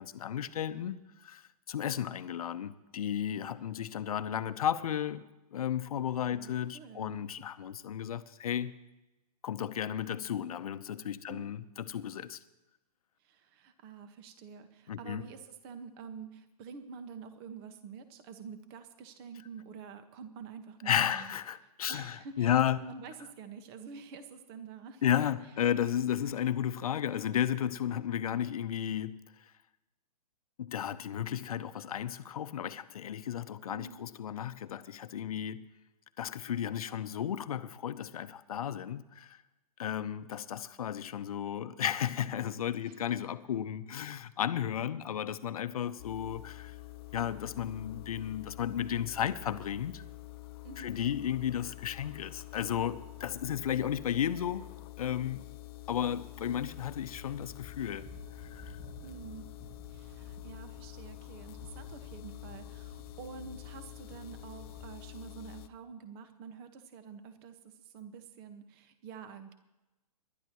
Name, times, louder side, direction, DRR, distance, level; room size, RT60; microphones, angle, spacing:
voice 1, 0.0-5.2 5.5-8.7 9.4-12.4 14.9-15.2 20.8-22.8 25.0-29.5 30.6-35.6 36.2-39.4 39.8-46.8 47.1-50.0 50.8-54.7 55.0-55.4 55.9-58.1 58.4-58.8, left 10 dB, 65° left, 0.9 m, -33 dB
voice 2, 6.1-7.2 11.3-11.5 13.2-21.3 21.9-25.0 33.7-34.0 42.8-43.0 50.6-50.9 59.0-59.5 59.9-69.5, right 6 dB, 40° right, 1.5 m, -48 dB
sound 1, 46.0-65.7, left 18 dB, 40° left, 0.5 m, -47 dB
sound 2, 46.1-46.2 46.8-48.2 48.5-49.8 51.1-51.8 52.1-55.2 55.6-64.9, equal, 10° right, 1.9 m, -54 dB
26.5 x 12.0 x 3.1 m
hypercardioid pair, 125°, 20 cm